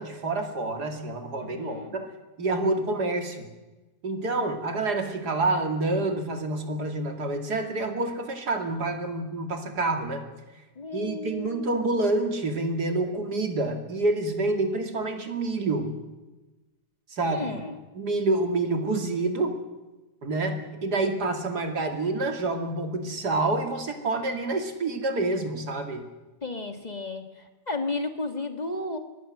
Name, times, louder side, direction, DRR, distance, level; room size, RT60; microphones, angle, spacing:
voice 1, 0.0-2.1 2.4-3.5 4.0-10.3 10.9-15.9 17.1-17.5 17.9-19.5 20.2-26.0, right 2 dB, 80° right, 5 dB, 3.1 m, -28 dB
voice 2, 1.4-2.0 10.8-11.7 17.2-17.8 26.4-29.0, left 2 dB, 25° left, 6 dB, 1.7 m, -33 dB
24.0 x 19.5 x 7.7 m, 1.1 s
omnidirectional pair, 1.7 m